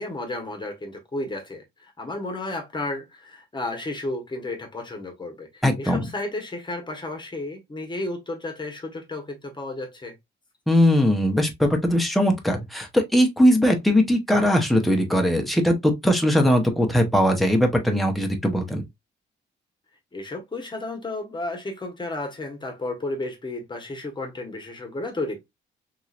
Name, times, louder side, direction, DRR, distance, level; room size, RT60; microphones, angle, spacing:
voice 1, 0.0-10.1 20.1-25.4, left 2 dB, 25° left, 1.1 m, -33 dB
voice 2, 5.6-6.0 10.7-18.8, equal, ahead, 0.8 m, -20 dB
3.1 x 2.8 x 2.4 m
cardioid pair, 90°, 20 cm